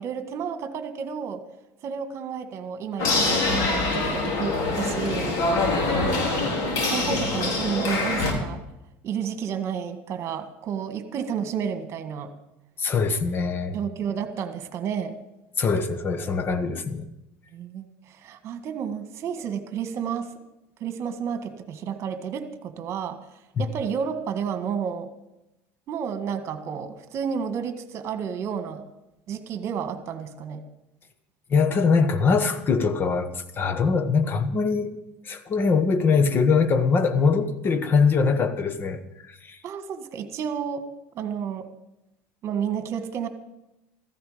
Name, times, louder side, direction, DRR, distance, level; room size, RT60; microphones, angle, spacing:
voice 1, 0.0-1.4 1.8-5.3 6.0-6.6 6.9-8.6 9.0-12.3 13.7-15.2 17.5-20.3 20.8-23.2 23.6-25.1 25.9-28.9 29.3-30.6 39.6-40.9 41.2-41.7 42.4-43.3, right 7 dB, 40° right, 1.8 m, -31 dB
sound 1, 3.0-8.3, left 3 dB, 55° left, 4.5 m, -24 dB
voice 2, 12.8-13.8 15.6-17.0 23.6-23.7 31.5-34.9 35.2-39.0 39.3-39.6, left 5 dB, 30° left, 1.4 m, -22 dB
15.0 x 14.5 x 5.2 m
supercardioid pair, 120°, 7 cm